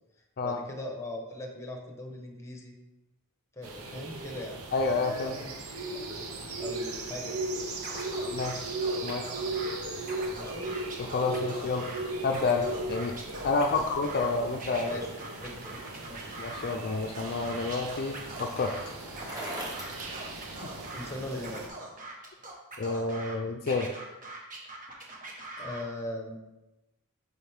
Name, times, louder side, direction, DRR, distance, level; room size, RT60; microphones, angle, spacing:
voice 1, 0.4-2.7 3.5-4.6 5.2-6.0 6.6-7.4 10.3-10.7 13.7-13.8 14.8-16.4 20.9-21.6 25.6-26.4, left 1 dB, 15° left, 2 dB, 1.2 m, -40 dB
sound 1, 3.6-21.7, right 2 dB, 70° right, 1.2 m, -37 dB
voice 2, 4.7-5.3 8.3-8.7 9.0-9.2 11.0-11.9 12.2-13.1 13.4-14.9 16.4-18.7 22.8-23.9, left 3 dB, 45° left, 4 dB, 0.5 m, -29 dB
Scratching (performance technique), 7.8-9.7 10.0-12.0 12.3-14.3 14.6-16.8 17.2-18.8 19.1-21.1 21.4-23.4 23.7-25.8, right 2 dB, 40° right, 1.4 m, -42 dB
Bicycle, 16.7-21.1, right 1 dB, 15° right, 1.5 m, -43 dB
7.5 x 6.4 x 3.6 m, 0.99 s
head